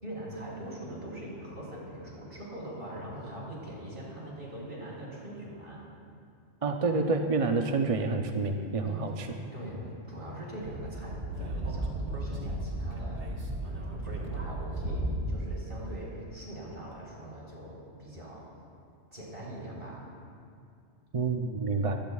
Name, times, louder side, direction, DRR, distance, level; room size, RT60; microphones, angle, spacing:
voice 1, 0.0-5.8 8.8-9.2 9.5-13.3 13.6-18.5 19.1-20.0 21.8-21.9, right 1 dB, 55° right, -4 dB, 4.6 m, -42 dB
voice 2, 6.6-9.3 21.1-22.0, right 3 dB, 35° right, 4 dB, 0.6 m, -28 dB
Speech / Wind, 10.6-15.5, right 1 dB, 80° right, 1.9 m, -34 dB
22.5 x 17.5 x 2.4 m, 2.4 s
omnidirectional pair, 1.1 m